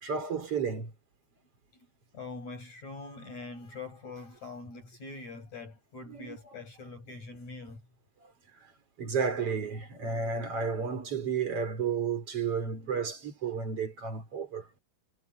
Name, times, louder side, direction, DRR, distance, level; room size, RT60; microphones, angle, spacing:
voice 1, 0.0-0.9 6.1-6.4 9.0-14.7, right 6 dB, 50° right, 4.9 m, -32 dB
voice 2, 2.1-7.8 13.4-13.5, left 3 dB, 60° left, 7.6 m, -43 dB
omnidirectional pair, 3.5 m